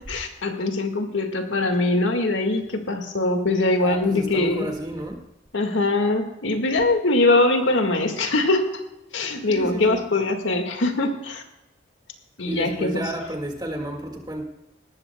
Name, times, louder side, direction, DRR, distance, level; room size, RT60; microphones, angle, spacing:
voice 1, 0.1-4.7 5.5-8.7 9.1-11.4 12.4-13.0, left 2 dB, 80° left, 5 dB, 1.9 m, -22 dB
voice 2, 3.8-5.2 9.5-10.0 12.5-14.4, right 1 dB, 20° right, 3 dB, 1.9 m, -31 dB
19.0 x 14.0 x 2.3 m, 0.90 s
head